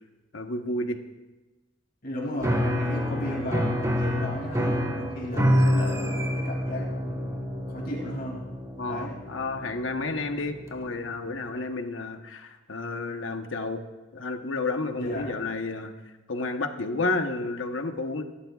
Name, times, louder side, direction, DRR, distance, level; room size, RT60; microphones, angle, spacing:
voice 1, 0.3-1.0 8.8-13.8 14.1-15.9 16.3-18.2, left 2 dB, 85° left, 6 dB, 1.1 m, -31 dB
voice 2, 2.0-8.4 8.9-9.2 15.0-15.4, left 1 dB, 50° left, -2 dB, 2.8 m, -35 dB
Piano, 2.4-10.9, equal, 15° right, 1.5 m, -28 dB
24.0 x 12.5 x 2.4 m, 1.1 s
head